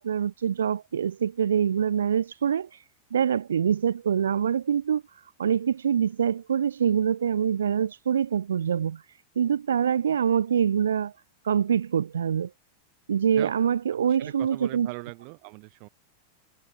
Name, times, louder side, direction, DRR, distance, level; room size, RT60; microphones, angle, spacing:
voice 1, 0.0-2.8 3.1-9.0 9.4-11.1 11.4-12.5 13.1-14.9, right 8 dB, 65° right, 0.6 m, -25 dB
voice 2, 13.9-15.9, right 40 dB or more, 45° right, 3.8 m, -40 dB
figure-of-eight pair, 90°, 0 cm